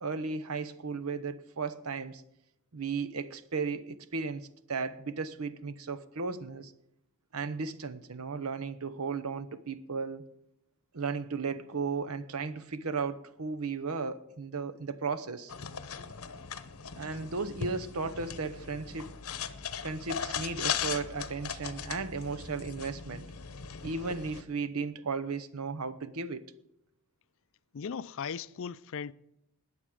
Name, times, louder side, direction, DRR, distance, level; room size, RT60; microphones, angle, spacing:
voice 1, 0.0-2.2 2.7-6.7 7.3-10.3 10.9-15.5 17.0-19.2 19.8-23.2 23.8-26.5, right 4 dB, 85° right, 0.8 m, -35 dB
sound 1, 15.5-24.4, left 7 dB, 80° left, 0.9 m, -38 dB
voice 2, 27.7-29.1, left 6 dB, 60° left, 0.4 m, -37 dB
20.0 x 7.3 x 5.0 m
head